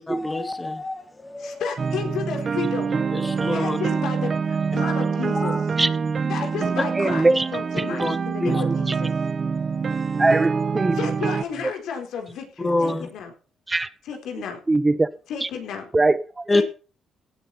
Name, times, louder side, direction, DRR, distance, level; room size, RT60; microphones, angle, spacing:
voice 1, 0.0-1.7 3.1-3.8 5.3-5.6 7.9-8.6 9.9-10.3 12.6-13.1 16.5-16.6, left 2 dB, 15° left, 1.9 m, -27 dB
voice 2, 1.4-2.9 3.5-5.5 6.3-9.1 10.9-13.3 14.0-14.6 15.3-15.8 16.5-16.6, left 7 dB, 80° left, 4.3 m, -32 dB
sound 1, 1.8-11.4, right 5 dB, 40° right, 1.1 m, -25 dB
voice 3, 7.0-7.5 7.8-7.9 8.6-8.8 10.2-11.0 13.7-13.9 14.7-15.1 15.4-15.5 15.9-16.4, right 2 dB, 20° right, 0.8 m, -21 dB
17.0 x 9.0 x 4.3 m
cardioid pair, 90°, 0 cm